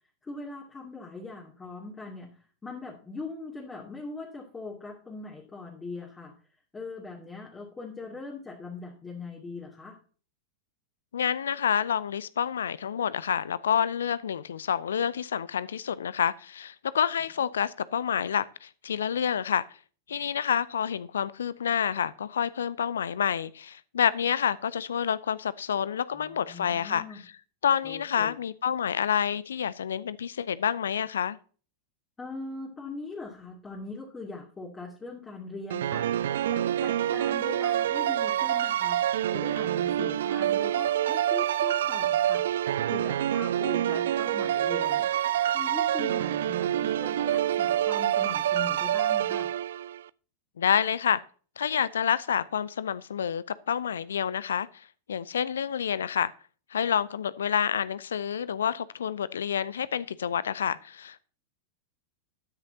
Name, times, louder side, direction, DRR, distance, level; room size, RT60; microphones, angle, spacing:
voice 1, 0.2-6.3 6.7-10.0 26.1-27.2 27.8-28.3 32.2-45.1 45.5-49.5, left 3 dB, 15° left, 2.6 m, -41 dB
voice 2, 11.1-19.6 20.1-27.2 27.6-31.4 50.6-51.2 51.6-56.3 56.7-61.2, left 8 dB, 65° left, 0.6 m, -28 dB
sound 1, 35.7-50.0, right 11 dB, 60° right, 0.4 m, -27 dB
13.0 x 9.8 x 2.8 m
figure-of-eight pair, 90°, 0 cm